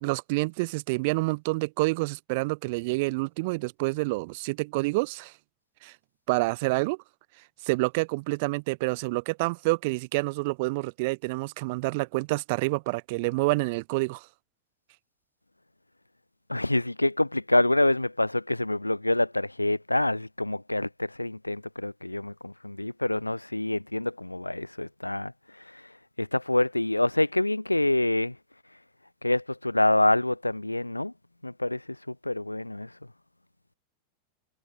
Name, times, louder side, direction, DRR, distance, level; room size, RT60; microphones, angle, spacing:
voice 1, 0.0-5.3 5.8-5.9 6.3-7.0 7.6-14.3, right 25 dB, 50° right, 1.4 m, -28 dB
voice 2, 16.5-25.3 25.7-25.8 26.2-28.4 29.2-31.1 31.4-32.9, left 1 dB, 85° left, 1.3 m, -26 dB
figure-of-eight pair, 90°, 0 cm